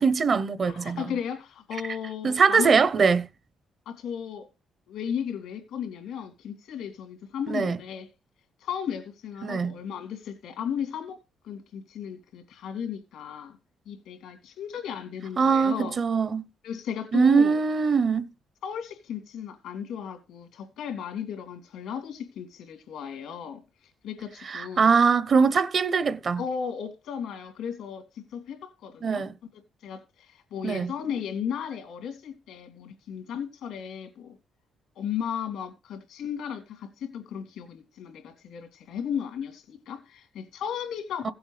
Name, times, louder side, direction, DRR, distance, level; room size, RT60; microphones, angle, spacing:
voice 1, 0.0-1.0 2.2-3.3 7.5-7.8 9.4-9.8 15.4-16.4 17.1-18.3 24.4-26.4 29.0-29.3 30.6-30.9 41.2-41.3, right 5 dB, 50° right, 0.8 m, -22 dB
voice 2, 0.7-2.8 3.9-4.5 4.9-8.1 8.6-13.6 13.9-16.0 16.6-17.6 18.6-23.6 24.0-24.9 26.4-29.2 29.5-34.4 34.9-41.3, left 8 dB, 90° left, 2.8 m, -35 dB
16.0 x 7.9 x 3.3 m
cardioid pair, 90°, 0 cm